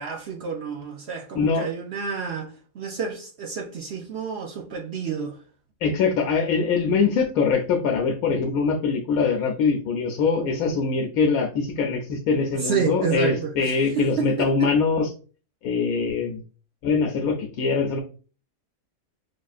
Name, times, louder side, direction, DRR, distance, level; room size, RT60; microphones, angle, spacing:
voice 1, 0.0-2.5 2.7-5.4 12.6-14.7, right 5 dB, 65° right, 0.7 m, -29 dB
voice 2, 1.3-1.7 5.8-15.1 15.6-16.4 16.8-18.0, left 5 dB, 90° left, 1.0 m, -23 dB
4.6 x 2.5 x 2.3 m
omnidirectional pair, 1.5 m